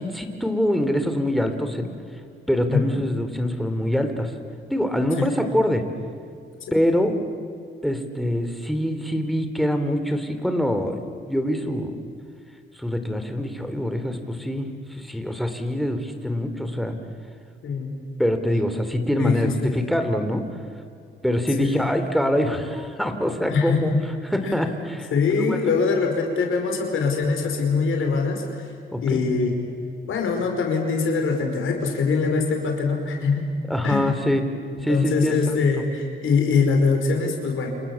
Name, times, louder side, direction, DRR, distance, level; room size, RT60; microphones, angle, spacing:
voice 1, 0.0-1.9 2.5-4.3 4.7-5.8 6.7-7.2 7.8-12.0 12.8-17.0 18.2-20.5 21.2-23.9 24.2-25.1 25.5-25.6 28.9-29.2 33.7-34.5 34.8-35.6, equal, ahead, 6 dB, 3.4 m, -24 dB
voice 2, 19.2-19.7 21.6-21.9 23.5-24.0 24.4-24.6 25.1-28.7 29.0-29.5 30.1-33.5 33.8-34.1 34.9-37.7, left 4 dB, 80° left, 2 dB, 5.1 m, -23 dB
29.5 x 27.5 x 7.3 m, 2.4 s
cardioid pair, 95°, 21 cm